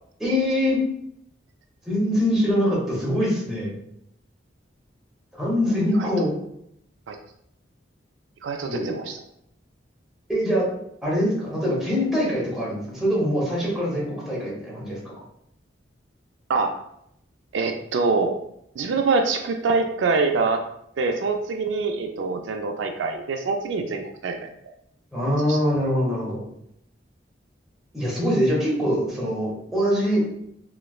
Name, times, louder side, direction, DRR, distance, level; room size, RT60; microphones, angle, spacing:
voice 1, 0.2-0.8 1.8-3.7 5.3-6.3 8.7-8.9 10.3-10.7 11.0-15.0 25.1-26.4 27.9-30.4, equal, ahead, -6 dB, 1.0 m, -23 dB
voice 2, 5.9-6.3 7.1-7.2 8.4-9.2 16.5-16.7 17.5-18.3 18.8-20.6 21.0-24.4 25.5-25.6, right 4 dB, 85° right, 4 dB, 0.4 m, -24 dB
3.1 x 3.0 x 2.3 m, 0.74 s
head